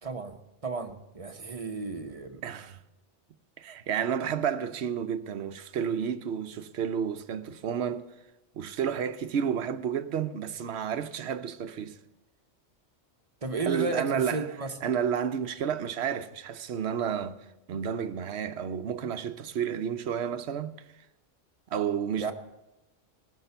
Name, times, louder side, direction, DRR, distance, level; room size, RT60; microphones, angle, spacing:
voice 1, 0.0-2.4 13.4-14.7 22.2-22.3, right 3 dB, 30° right, 1.0 m, -33 dB
voice 2, 2.4-2.8 3.6-8.1 8.5-12.0 13.6-17.4 17.7-20.8 21.7-22.3, right 8 dB, 65° right, 0.9 m, -31 dB
19.5 x 6.6 x 6.8 m
omnidirectional pair, 1.2 m